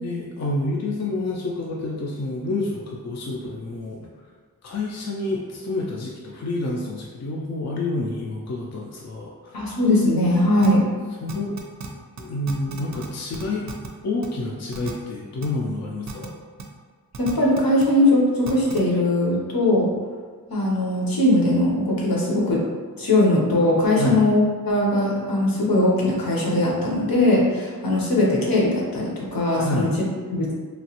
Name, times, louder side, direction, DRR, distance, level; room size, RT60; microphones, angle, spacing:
voice 1, 0.0-4.1 4.6-9.6 11.2-11.6 12.2-13.7 14.0-16.3 24.0-24.2 29.6-29.9, left 2 dB, 50° left, -3 dB, 0.4 m, -28 dB
voice 2, 9.5-10.8 17.2-19.9 20.5-22.6 23.0-29.9 30.3-30.5, left 1 dB, 75° left, -4 dB, 0.9 m, -20 dB
sound 1, 10.6-10.7 11.3-11.9 12.2-12.3 12.5-13.1 13.3-13.9 14.2-14.3 14.7-14.9 15.4-15.5 16.1-16.3 16.6-16.7 17.1-17.8 18.5-18.8, right 5 dB, 50° right, 0.4 m, -34 dB
3.0 x 2.3 x 2.9 m, 1.5 s
wide cardioid pair, 60°, 36 cm